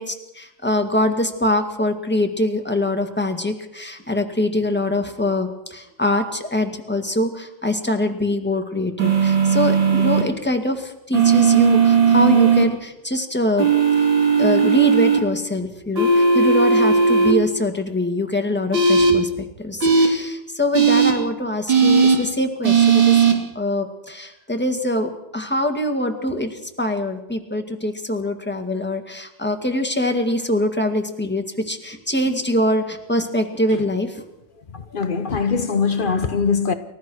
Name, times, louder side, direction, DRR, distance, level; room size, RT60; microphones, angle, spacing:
voice 1, 0.0-13.7 14.0-14.1 14.4-34.2, left 1 dB, 5° left, 1.8 m, -24 dB
sound 1, 9.0-10.2 11.1-12.6 13.6-15.2 16.0-17.3 18.7-19.1 19.8-20.1 20.7-21.1 21.7-22.2 22.6-23.3, right 5 dB, 65° right, 3.5 m, -16 dB
voice 2, 34.7-36.7, left 5 dB, 85° left, 0.4 m, -22 dB
29.5 x 14.0 x 6.4 m
omnidirectional pair, 2.3 m